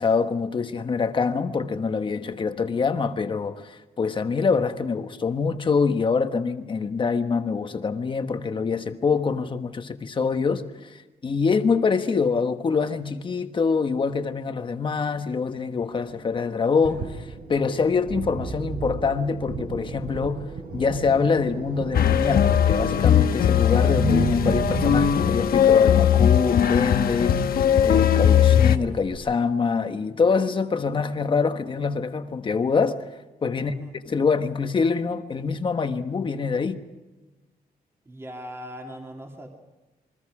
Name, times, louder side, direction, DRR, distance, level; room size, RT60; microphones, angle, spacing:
voice 1, 0.0-20.5 20.7-27.4 27.8-33.0 33.4-33.7 34.1-36.8, left 5 dB, 30° left, 1.3 m, -25 dB
sound 1, 16.8-29.2, right 5 dB, 70° right, 3.4 m, -34 dB
sound 2, 21.9-28.8, left 9 dB, 70° left, 1.1 m, -19 dB
voice 2, 33.5-33.9 38.1-39.5, equal, 15° right, 2.7 m, -39 dB
28.5 x 23.0 x 5.0 m
wide cardioid pair, 175°, 16 cm